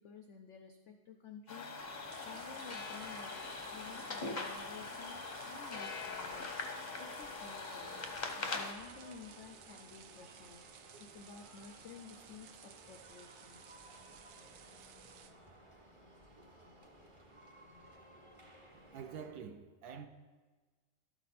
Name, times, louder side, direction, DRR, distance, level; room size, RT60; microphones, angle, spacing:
voice 1, 0.0-2.0 2.2-3.4 3.7-6.7 7.0-8.1 8.4-10.6 11.1-13.6, left 5 dB, 85° left, 0.6 m, -53 dB
sound 1, 1.5-8.7, left 3 dB, 45° left, 0.6 m, -42 dB
sound 2, 1.8-19.3, right 1 dB, 25° right, 0.7 m, -58 dB
sound 3, 2.1-15.3, right 8 dB, 90° right, 1.3 m, -57 dB
voice 2, 18.7-20.1, right 7 dB, 70° right, 1.0 m, -47 dB
12.5 x 5.8 x 4.2 m
omnidirectional pair, 1.9 m